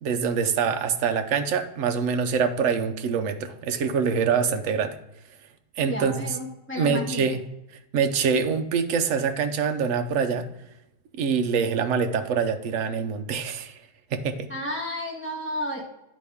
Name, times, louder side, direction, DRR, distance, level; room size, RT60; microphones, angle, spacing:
voice 1, 0.0-5.0 5.8-6.3 6.8-7.4 7.9-10.5 11.2-13.8 14.1-14.5, right 6 dB, 60° right, 8 dB, 0.9 m, -25 dB
voice 2, 5.9-7.3 14.5-15.9, left 1 dB, 10° left, -1 dB, 1.3 m, -32 dB
9.9 x 4.1 x 3.5 m, 0.92 s
omnidirectional pair, 1.8 m